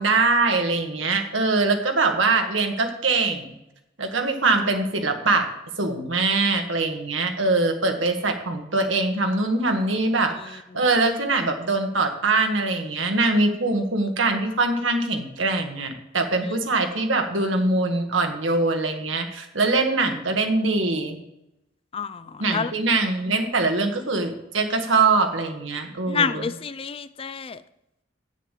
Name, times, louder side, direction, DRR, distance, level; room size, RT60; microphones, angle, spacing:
voice 1, 0.0-3.5 4.0-5.5 5.8-21.2 22.4-26.5, right 3 dB, 90° right, 5 dB, 1.6 m, -23 dB
voice 2, 21.9-22.7 26.1-27.6, left 6 dB, 30° left, 14 dB, 0.4 m, -28 dB
8.3 x 7.2 x 7.5 m, 0.87 s
head